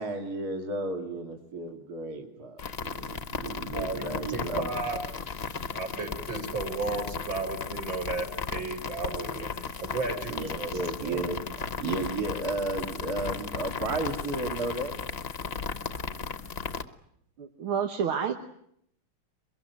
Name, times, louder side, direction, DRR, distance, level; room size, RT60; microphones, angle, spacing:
voice 1, 0.0-4.7 9.7-9.8 10.3-15.0 15.6-15.7, right 2 dB, 45° right, 3 dB, 3.0 m, -33 dB
sound 1, 2.6-16.8, left 5 dB, 35° left, 1.0 m, -35 dB
voice 2, 3.7-5.0 5.7-11.2, right 3 dB, 60° right, 3 dB, 5.4 m, -34 dB
voice 3, 17.4-18.3, right 7 dB, 80° right, 5 dB, 2.2 m, -29 dB
23.5 x 22.5 x 9.3 m, 0.71 s
omnidirectional pair, 2.3 m